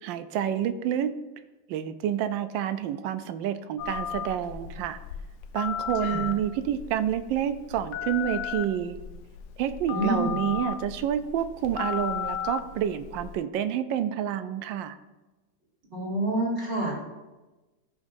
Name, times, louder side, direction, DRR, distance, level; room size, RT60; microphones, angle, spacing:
voice 1, 0.0-1.1 1.7-5.0 5.5-9.0 9.6-15.0, right 10 dB, 75° right, 11 dB, 1.2 m, -28 dB
Telephone, 3.8-13.3, left 8 dB, 85° left, 1.4 m, -35 dB
voice 2, 9.9-10.3 15.9-17.0, right 1 dB, 35° right, -4 dB, 2.6 m, -27 dB
13.5 x 6.1 x 2.6 m, 1.1 s
omnidirectional pair, 2.1 m